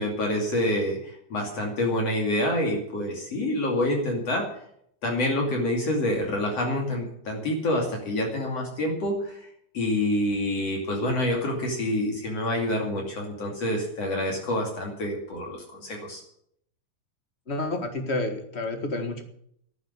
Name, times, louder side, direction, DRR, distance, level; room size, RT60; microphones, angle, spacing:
voice 1, 0.0-4.5 5.0-9.5 9.7-16.2, left 1 dB, 55° left, 0 dB, 3.7 m, -27 dB
voice 2, 17.5-19.2, left 2 dB, 25° left, 6 dB, 1.5 m, -29 dB
12.0 x 9.4 x 9.7 m, 0.68 s
omnidirectional pair, 3.5 m